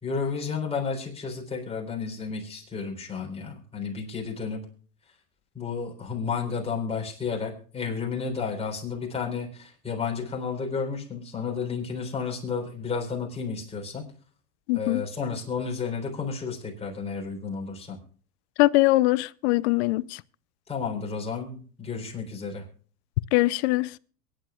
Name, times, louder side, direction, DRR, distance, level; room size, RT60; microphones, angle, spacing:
voice 1, 0.0-4.6 5.5-14.0 14.7-18.0 20.7-22.6, left 5 dB, 10° left, 3.7 m, -32 dB
voice 2, 14.7-15.1 18.6-20.2 23.3-23.9, left 20 dB, 45° left, 0.5 m, -22 dB
23.0 x 10.5 x 2.3 m
supercardioid pair, 130°, 48 cm